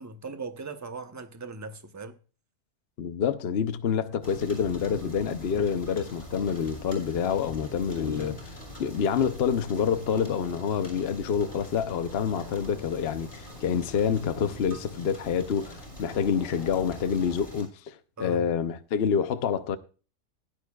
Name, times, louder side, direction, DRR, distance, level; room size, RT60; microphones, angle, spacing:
voice 1, 0.0-2.2 8.0-8.5 16.0-16.2 18.2-18.5, right 3 dB, 20° right, 0.5 m, -39 dB
voice 2, 3.0-8.4 8.8-19.8, left 7 dB, 50° left, 0.8 m, -27 dB
sound 1, 4.2-17.6, left 1 dB, 30° left, 5.1 m, -43 dB
16.0 x 10.5 x 2.3 m
omnidirectional pair, 1.7 m